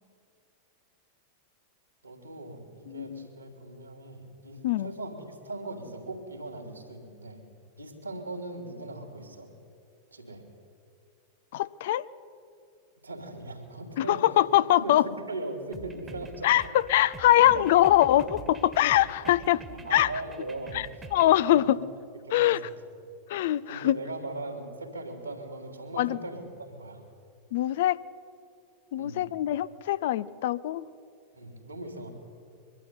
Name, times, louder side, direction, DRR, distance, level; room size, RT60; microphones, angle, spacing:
voice 1, 2.0-7.4 7.8-9.5 10.1-10.4 13.0-14.3 14.8-16.5 17.3-17.7 19.2-19.3 19.7-20.9 21.4-21.7 22.1-22.6 23.7-27.1 29.0-29.3 31.3-32.1, right 2 dB, 80° right, 3 dB, 3.4 m, -39 dB
voice 2, 2.9-3.3 4.6-4.9 11.5-12.0 14.0-15.0 16.4-16.6 16.9-19.6 19.9-20.1 20.7-20.9 21.1-21.8 22.3-22.6 23.3-24.0 26.0-26.2 27.5-28.0 28.9-30.8, left 13 dB, 55° left, 18 dB, 0.6 m, -23 dB
sound 1, 15.7-21.4, right 4 dB, 15° right, 1.6 m, -45 dB
23.0 x 12.5 x 9.6 m, 2.4 s
figure-of-eight pair, 90°, 0 cm